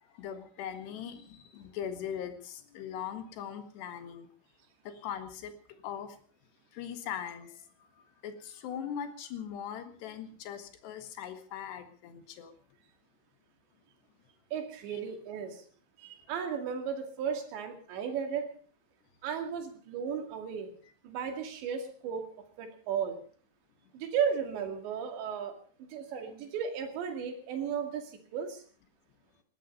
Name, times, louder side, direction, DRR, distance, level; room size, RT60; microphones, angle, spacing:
voice 1, 0.1-4.3 4.9-5.5 5.8-6.2 6.7-7.9 8.2-12.5 14.9-15.0, left 8 dB, 70° left, 9 dB, 3.6 m, -40 dB
voice 2, 14.5-15.6 16.0-18.4 19.2-20.7 21.0-22.2 22.6-23.2 23.9-25.5 25.9-28.6, right 7 dB, 70° right, 5 dB, 4.6 m, -35 dB
19.5 x 13.5 x 5.4 m, 0.43 s
omnidirectional pair, 5.4 m